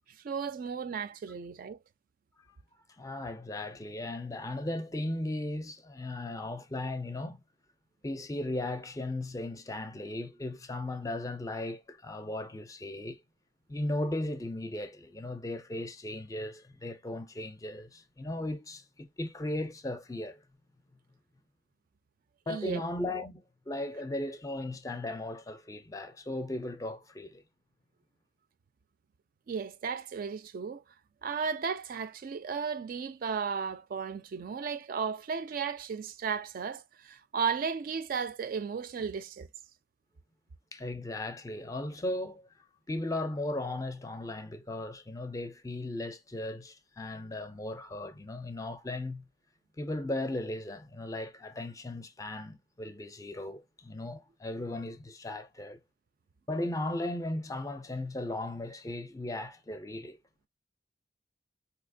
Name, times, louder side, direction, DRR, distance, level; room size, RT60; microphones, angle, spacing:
voice 1, 0.2-1.8 22.5-22.8 29.5-30.8 31.2-39.5, right 6 dB, 50° right, 0.3 m, -34 dB
voice 2, 3.0-7.4 8.0-13.2 13.7-20.4 22.5-27.4 40.7-42.5 42.9-49.3 49.8-55.8 56.5-60.2, left 1 dB, 20° left, 0.4 m, -36 dB
3.9 x 2.8 x 2.5 m
head